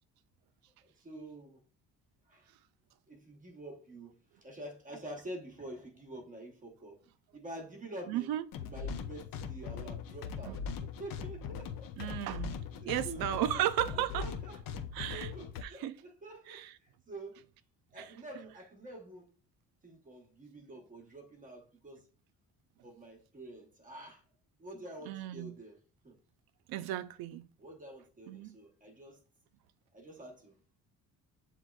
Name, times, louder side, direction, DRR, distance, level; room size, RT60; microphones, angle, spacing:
voice 1, 0.8-1.6 2.3-2.5 3.1-7.0 7.3-8.3 8.6-12.2 12.5-13.3 13.5-13.6 13.9-14.6 15.1-17.4 17.9-19.3 19.8-22.1 22.8-24.2 24.6-25.8 26.0-26.2 27.6-29.2 29.9-30.6, right 1 dB, 20° right, 0.9 m, -48 dB
voice 2, 8.1-8.4 10.5-10.6 12.0-12.6 12.9-14.3 14.9-15.3 15.6-16.0 16.5-16.7 18.0-18.1 25.1-25.6 26.7-27.5 28.3-28.6, right 12 dB, 85° right, 0.5 m, -34 dB
sound 1, 8.5-15.6, left 6 dB, 70° left, 0.6 m, -40 dB
7.4 x 3.0 x 2.3 m
cardioid pair, 135°, 36 cm